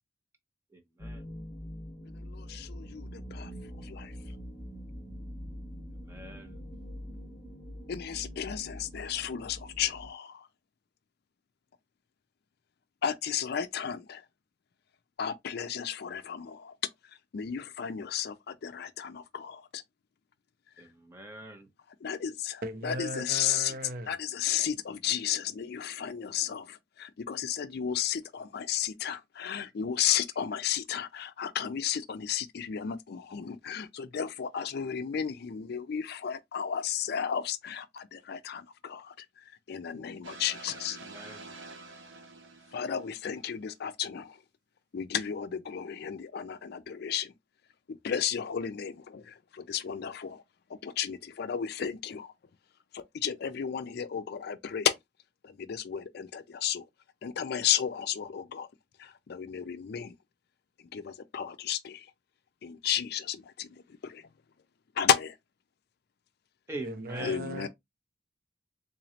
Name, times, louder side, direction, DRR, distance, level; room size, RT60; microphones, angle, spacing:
voice 1, 0.7-1.3 6.0-6.6 20.8-21.7 41.0-41.5 66.7-67.5, right 2 dB, 15° right, 0.8 m, -43 dB
sound 1, 1.0-10.1, equal, 25° left, 1.0 m, -44 dB
voice 2, 2.2-3.5 3.8-4.1 7.9-10.5 13.0-14.2 15.2-16.7 17.3-19.8 22.0-22.6 22.8-23.7 24.1-39.1 39.7-41.0 41.2-41.4 42.7-44.4 44.9-47.3 48.0-50.4 50.8-52.3 52.9-54.9 55.4-56.9 57.2-58.7 59.0-60.1 60.9-62.1 62.6-63.8 64.0-64.2 65.0-65.3 67.2-67.7, left 9 dB, 55° left, 0.4 m, -33 dB
voice 3, 22.6-24.2 66.8-67.7, right 1 dB, 50° right, 0.7 m, -38 dB
sound 2, 40.2-43.7, right 3 dB, 80° right, 0.7 m, -48 dB
3.8 x 3.0 x 2.7 m
head